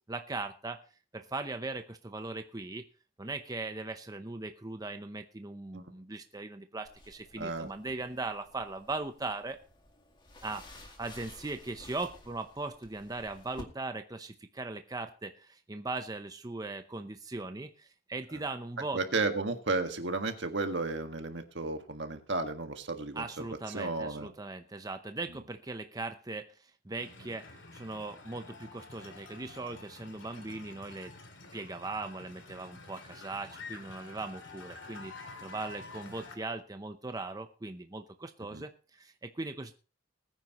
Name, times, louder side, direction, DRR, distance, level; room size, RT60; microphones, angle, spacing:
voice 1, 0.1-0.8 1.1-2.8 3.2-9.6 10.4-19.0 23.2-27.5 27.7-31.1 31.5-35.1 35.4-39.7, right 3 dB, 20° right, 7 dB, 0.7 m, -39 dB
sound 1, 6.8-13.6, left 1 dB, 25° left, 2.1 m, -53 dB
voice 2, 7.4-7.7 18.9-24.3 38.5-38.6, right 3 dB, 70° right, 6 dB, 1.7 m, -33 dB
sound 2, 27.0-36.4, left 3 dB, 85° left, 2.5 m, -49 dB
20.5 x 9.5 x 3.0 m, 0.36 s
head